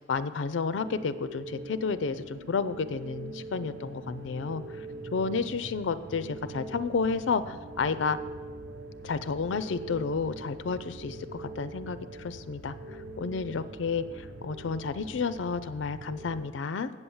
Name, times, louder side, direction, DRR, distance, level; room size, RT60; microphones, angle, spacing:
voice 1, 0.1-4.6 5.1-8.2 9.0-16.9, left 5 dB, 90° left, 13 dB, 0.4 m, -31 dB
sound 1, 0.7-16.4, right 2 dB, 85° right, 1.1 m, -43 dB
8.1 x 7.1 x 7.1 m, 1.5 s
head